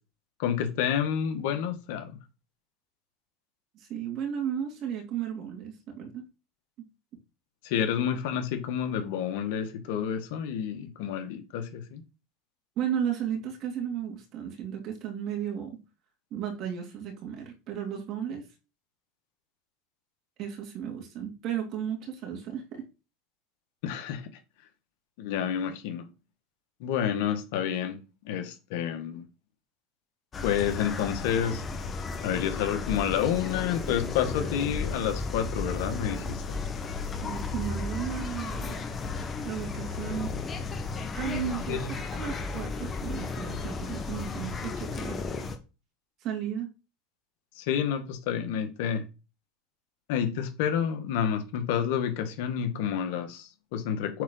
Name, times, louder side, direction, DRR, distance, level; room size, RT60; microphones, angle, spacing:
voice 1, 0.4-2.1 7.6-12.0 23.8-24.2 25.2-26.0 26.8-28.0 28.2-29.2 30.4-31.6 32.2-36.6 41.7-41.9 47.6-49.0 50.1-54.2, left 8 dB, 70° left, 1.6 m, -29 dB
voice 2, 3.8-6.2 12.8-15.8 16.3-18.5 20.4-22.8 37.2-38.8 39.4-40.3 41.1-45.2 46.2-46.7, right 9 dB, 50° right, 2.9 m, -34 dB
sound 1, 30.3-45.6, left 4 dB, 25° left, 1.3 m, -34 dB
8.4 x 4.0 x 3.9 m
supercardioid pair, 125°, 0 cm